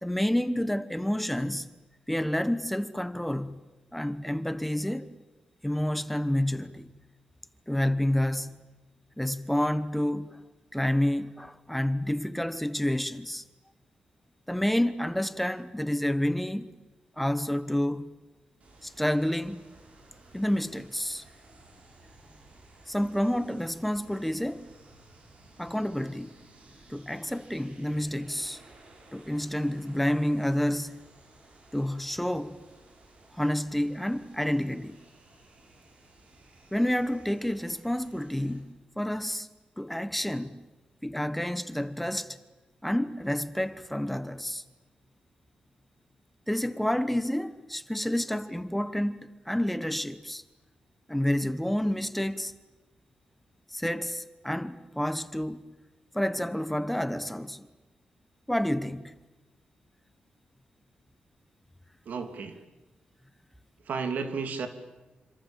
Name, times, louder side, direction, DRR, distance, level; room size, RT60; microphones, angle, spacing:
voice 1, 0.0-1.7 2.1-5.1 5.6-6.9 7.7-8.7 9.2-10.4 10.7-13.4 14.5-16.8 17.2-18.1 18.8-19.6 20.3-21.2 22.9-24.7 25.6-26.3 26.9-28.6 29.1-31.0 31.7-32.5 33.3-35.0 36.7-39.5 39.8-40.6 41.0-42.4 42.8-44.6 46.5-50.4 51.1-52.5 53.7-55.6 56.1-57.7 58.5-59.1, left 1 dB, 5° left, 1.1 m, -29 dB
sound 1, 18.6-38.6, right 2 dB, 50° right, 7.4 m, -56 dB
voice 2, 62.0-62.6 63.8-64.7, right 5 dB, 75° right, 3.0 m, -32 dB
28.0 x 26.5 x 7.4 m
wide cardioid pair, 155°, 3 cm